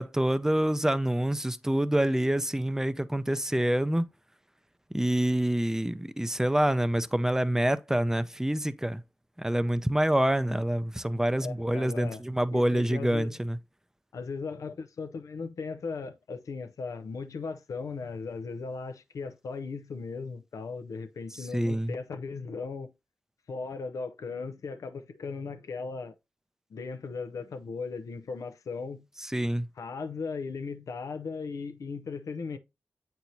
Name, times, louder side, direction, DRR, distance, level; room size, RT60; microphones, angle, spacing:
voice 1, 0.0-4.1 4.9-9.0 9.4-13.6 21.5-21.9 29.2-29.7, right 1 dB, 10° right, 0.6 m, -26 dB
voice 2, 11.4-12.2 12.5-13.4 14.1-22.9 23.5-26.1 26.7-29.0 29.8-32.6, left 4 dB, 75° left, 0.7 m, -37 dB
7.8 x 4.4 x 2.7 m
cardioid pair, 40°, 6 cm